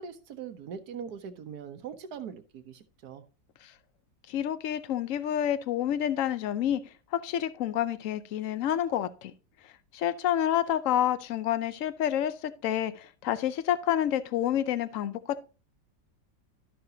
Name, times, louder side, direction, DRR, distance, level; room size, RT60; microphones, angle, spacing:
voice 1, 0.0-3.2, right 7 dB, 60° right, 1.3 m, -41 dB
voice 2, 4.3-6.8 7.1-9.3 9.9-15.4, left 11 dB, 75° left, 0.7 m, -28 dB
12.5 x 5.7 x 2.7 m
omnidirectional pair, 2.1 m